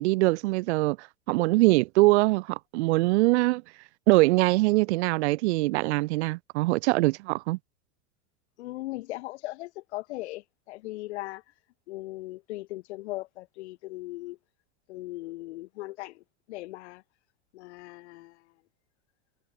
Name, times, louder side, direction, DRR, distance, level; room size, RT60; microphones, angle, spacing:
voice 1, 0.0-3.6 4.1-7.6, right 21 dB, 80° right, 0.6 m, -23 dB
voice 2, 8.6-11.4 11.9-14.4 14.9-17.0 17.5-18.5, left 19 dB, 80° left, 1.1 m, -38 dB
supercardioid pair, 170°, 33 cm